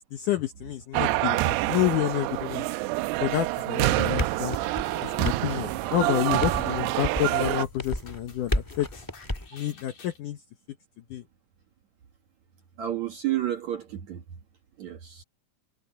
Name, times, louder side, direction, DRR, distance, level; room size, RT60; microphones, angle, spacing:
voice 1, 0.1-2.7 3.2-4.6 5.0-8.9 9.5-10.4 11.1-11.2, left 12 dB, 75° left, 2.0 m, -29 dB
sound 1, 0.9-7.7, right 18 dB, 85° right, 2.7 m, -27 dB
sound 2, 3.3-10.2, left 4 dB, 55° left, 6.1 m, -51 dB
sound 3, 3.9-9.5, left 1 dB, 10° left, 1.3 m, -33 dB
voice 2, 12.8-14.2 14.8-15.2, right 12 dB, 60° right, 2.0 m, -30 dB
omnidirectional pair, 4.8 m